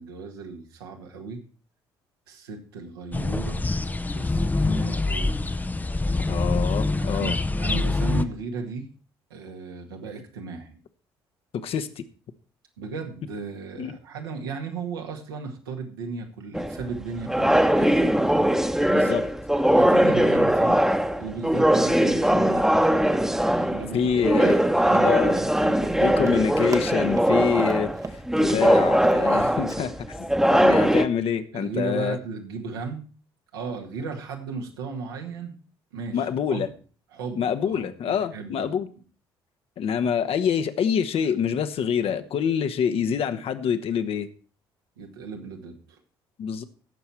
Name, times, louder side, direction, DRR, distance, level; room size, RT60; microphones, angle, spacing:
voice 1, 0.0-1.4 2.3-3.7 4.1-5.7 7.0-8.8 9.3-10.8 12.8-18.4 19.7-20.8 21.2-22.7 23.6-25.3 25.6-25.8 31.5-33.1 33.5-35.5 35.9-36.6 37.1-38.7 45.0-46.0, right 4 dB, 75° right, 2 dB, 2.0 m, -36 dB
sound 1, 3.1-8.3, left 2 dB, 15° left, 0.8 m, -25 dB
voice 2, 6.3-7.4 11.5-12.0 13.8-13.9 18.9-19.2 23.9-24.6 25.0-25.4 26.0-27.9 28.4-32.2 36.1-36.7 37.4-38.9 39.8-44.3 46.4-46.6, left 7 dB, 50° left, 9 dB, 1.2 m, -26 dB
sound 2, 16.5-31.0, equal, 5° right, 1.2 m, -21 dB
Run, 24.4-28.2 28.5-28.7 28.9-29.3 29.7-29.8, right 4 dB, 25° right, 1.1 m, -35 dB
16.5 x 7.1 x 4.5 m, 0.39 s
figure-of-eight pair, 50°, 12 cm